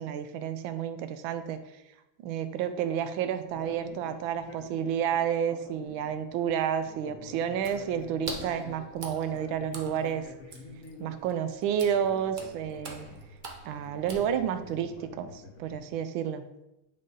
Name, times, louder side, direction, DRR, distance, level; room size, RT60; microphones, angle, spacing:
voice 1, 0.0-1.6 2.2-10.2 11.0-13.1 13.6-16.4, right 8 dB, 80° right, 9 dB, 1.4 m, -30 dB
sound 1, 3.4-15.9, left 3 dB, 55° left, 1.1 m, -49 dB
Water / Splash splatter, 7.5-14.8, right 3 dB, 60° right, 0.5 m, -44 dB
9.3 x 3.7 x 3.9 m, 0.92 s
omnidirectional pair, 2.2 m